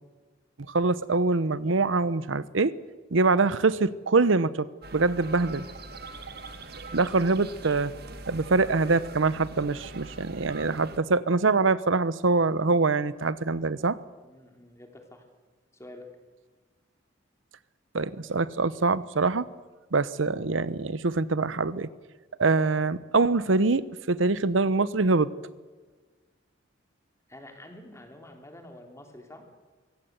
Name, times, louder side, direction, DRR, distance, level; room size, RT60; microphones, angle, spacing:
voice 1, 0.7-2.7 3.1-5.6 6.9-7.9 8.3-14.0 17.9-19.5 19.9-21.9 22.4-25.3, right 3 dB, 90° right, 17 dB, 0.9 m, -24 dB
sound 1, 4.8-11.0, right 3 dB, 55° right, 1.7 m, -42 dB
voice 2, 14.2-15.3 15.7-16.1 27.3-29.5, left 1 dB, 15° left, 4 dB, 3.2 m, -47 dB
24.0 x 17.0 x 8.1 m, 1.3 s
head